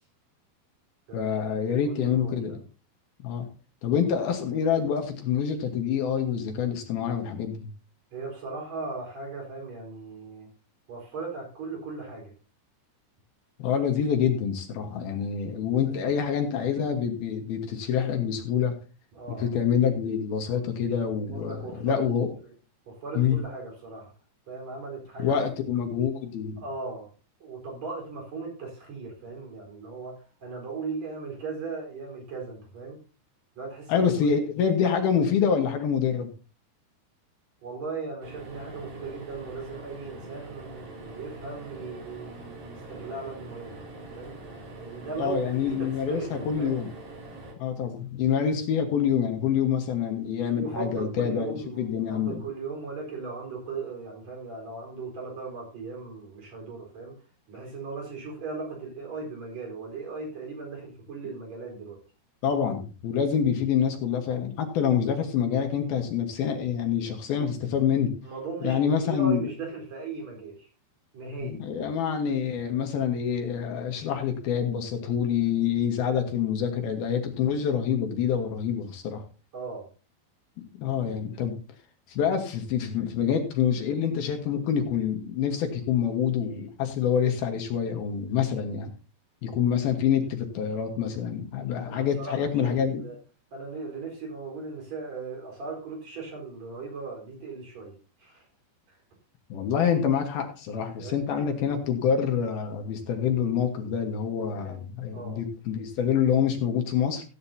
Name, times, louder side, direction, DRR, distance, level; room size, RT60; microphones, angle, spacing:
voice 1, 1.1-2.6 3.2-3.5 3.8-7.7 13.6-18.8 19.3-22.3 23.1-23.4 25.2-26.6 33.9-36.3 45.2-46.9 47.6-52.4 62.4-68.1 68.6-69.5 71.4-79.2 80.8-81.6 82.1-88.9 89.4-93.0 99.5-107.2, left 8 dB, 70° left, 4 dB, 2.9 m, -26 dB
voice 2, 1.7-2.6 8.1-10.5 10.9-12.3 15.9-16.1 19.1-19.5 21.3-22.0 22.4-22.5 22.9-24.1 24.5-25.5 26.6-27.1 27.4-30.2 30.4-33.0 33.6-34.1 37.6-43.9 44.1-44.3 44.8-46.7 50.4-57.1 57.5-62.0 64.8-65.1 68.2-70.7 71.1-71.6 79.5-79.9 91.8-93.2 93.5-97.9 98.2-98.4 98.9-99.0 101.0-101.3 104.5-104.8 105.1-105.4, right 4 dB, 40° right, 0 dB, 5.4 m, -38 dB
sound 1, 38.2-47.5, right 2 dB, 55° right, 4.5 m, -43 dB
16.0 x 9.5 x 2.8 m, 0.34 s
omnidirectional pair, 5.0 m